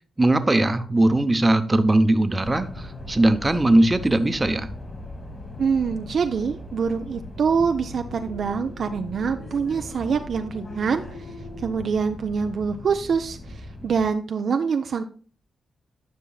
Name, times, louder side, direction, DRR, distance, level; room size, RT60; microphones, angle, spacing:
voice 1, 0.2-4.7, right 1 dB, 25° right, 10 dB, 0.7 m, -20 dB
sound 1, 2.4-14.1, left 1 dB, 30° left, 2.2 m, -40 dB
sound 2, 2.6-11.9, left 2 dB, 80° left, 0.9 m, -43 dB
voice 2, 5.6-11.0 11.6-13.4 13.8-15.0, right 6 dB, 60° right, 7 dB, 0.4 m, -25 dB
10.0 x 5.6 x 2.3 m, 0.42 s
hypercardioid pair, 40°, 0 cm